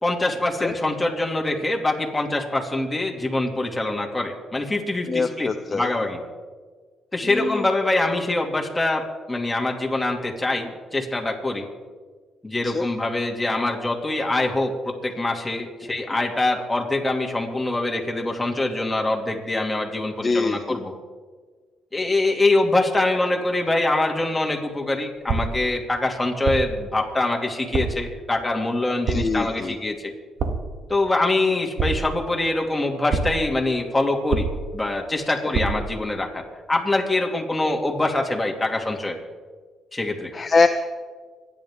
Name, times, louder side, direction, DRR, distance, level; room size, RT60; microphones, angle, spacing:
voice 1, 0.0-6.2 7.1-11.7 12.4-20.9 21.9-30.1 30.9-34.5 34.7-39.2 39.9-40.3, left 2 dB, 15° left, 0 dB, 2.7 m, -24 dB
voice 2, 5.1-5.9 7.3-7.7 12.6-12.8 20.2-20.8 29.1-29.7 40.3-40.7, left 4 dB, 30° left, 6 dB, 0.8 m, -23 dB
sound 1, 25.3-25.7 26.5-26.9 27.7-28.1 29.1-29.5 30.4-30.8 31.8-32.3 33.1-33.6 34.3-34.8 35.5-36.0, right 4 dB, 60° right, 1.7 m, -26 dB
26.0 x 10.5 x 3.7 m, 1.5 s
cardioid pair, 90°, 0 cm